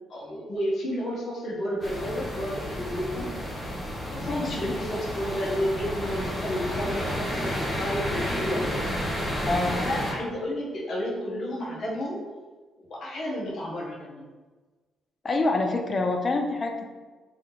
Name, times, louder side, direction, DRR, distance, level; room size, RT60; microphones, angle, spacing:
voice 1, 0.1-3.3 4.1-8.8 9.7-12.2 12.9-14.3, equal, 55° left, -4 dB, 1.1 m, -31 dB
sound 1, 1.8-10.1, equal, 20° left, 1.1 m, -31 dB
voice 2, 4.2-4.7 9.5-9.8 15.2-16.9, left 2 dB, 35° left, 4 dB, 0.5 m, -26 dB
3.2 x 2.8 x 3.9 m, 1.3 s
cardioid pair, 90°, 0 cm